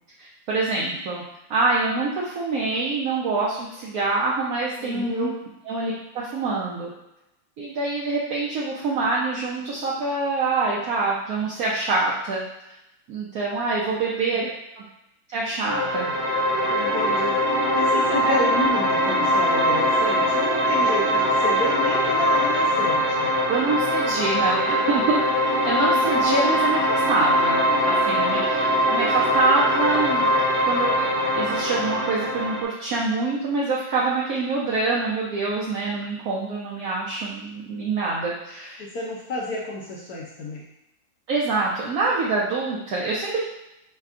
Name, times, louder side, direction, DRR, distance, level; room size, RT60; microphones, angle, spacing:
voice 1, 0.2-1.2 1.5-5.3 5.6-6.9 7.6-12.4 13.1-14.4 15.3-16.1 18.1-18.4 23.5-30.2 30.6-31.0 31.3-38.8 41.3-43.4, right 3 dB, 70° right, -5 dB, 0.9 m, -25 dB
voice 2, 4.8-5.3 14.3-14.4 16.7-23.3 38.8-40.6, left 2 dB, 70° left, -4 dB, 0.9 m, -31 dB
sound 1, 15.7-32.6, equal, 40° right, 0.9 m, -22 dB
4.4 x 3.4 x 2.4 m, 0.89 s
omnidirectional pair, 2.1 m